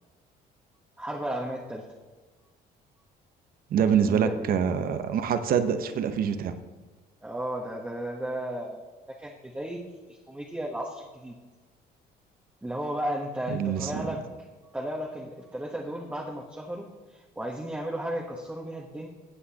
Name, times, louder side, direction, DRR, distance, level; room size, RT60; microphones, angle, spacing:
voice 1, 1.0-1.8 4.1-4.4 7.2-8.8 9.2-9.8 10.1-11.4 12.6-14.2 14.7-19.1, right 1 dB, 10° right, -1 dB, 1.2 m, -34 dB
voice 2, 3.7-6.5 13.5-14.1, right 7 dB, 60° right, 9 dB, 0.9 m, -25 dB
15.5 x 8.4 x 2.9 m, 1.4 s
cardioid pair, 110°, 17 cm